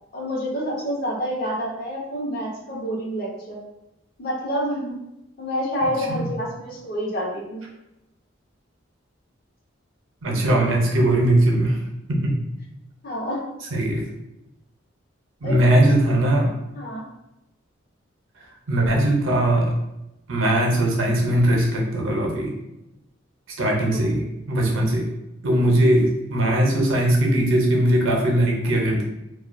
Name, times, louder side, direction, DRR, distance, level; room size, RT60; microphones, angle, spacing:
voice 1, 0.1-3.6 4.2-4.9 5.4-7.6 13.0-13.4 15.4-16.2 16.7-17.0 23.9-24.1, equal, 50° left, -3 dB, 0.6 m, -28 dB
voice 2, 10.2-11.8 12.1-12.3 13.7-14.1 15.4-16.5 18.7-19.7 20.3-22.5 23.6-25.1 25.4-29.0, right 1 dB, 90° right, 0 dB, 0.6 m, -20 dB
2.2 x 2.2 x 2.5 m, 0.90 s
head